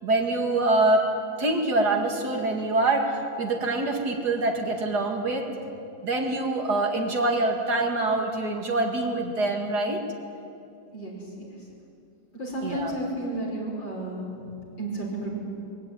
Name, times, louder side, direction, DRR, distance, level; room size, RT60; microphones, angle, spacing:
voice 1, 0.0-1.1 1.4-5.5 6.0-10.0 12.6-13.0, right 2 dB, 60° right, 2 dB, 2.5 m, -25 dB
voice 2, 10.9-11.5 12.3-14.5 14.8-15.3, right 1 dB, 70° left, -3 dB, 5.8 m, -32 dB
21.5 x 16.0 x 9.1 m, 2.6 s
omnidirectional pair, 2.1 m